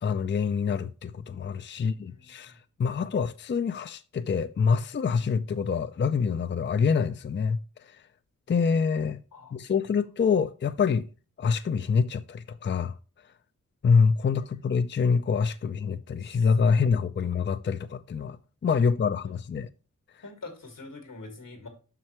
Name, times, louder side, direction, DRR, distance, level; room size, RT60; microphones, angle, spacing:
voice 1, 0.0-2.5 2.8-7.6 8.5-9.2 9.5-11.1 11.4-12.9 13.8-18.4 18.6-19.7, left 5 dB, 35° left, 0.4 m, -26 dB
voice 2, 1.8-2.6 2.8-3.1 9.3-9.7 16.2-16.5 20.2-21.7, left 3 dB, 90° left, 2.1 m, -45 dB
7.5 x 5.5 x 3.0 m
cardioid pair, 50°, 31 cm